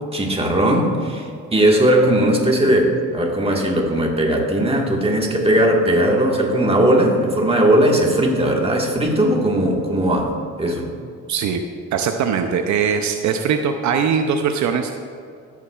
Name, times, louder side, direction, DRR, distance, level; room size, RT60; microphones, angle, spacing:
voice 1, 0.1-10.3 10.6-10.9, right 1 dB, 20° right, 0 dB, 1.6 m, -18 dB
voice 2, 11.3-11.6 11.9-14.9, right 6 dB, 70° right, 6 dB, 0.6 m, -21 dB
13.5 x 7.3 x 2.4 m, 2.4 s
cardioid pair, 90°, 30 cm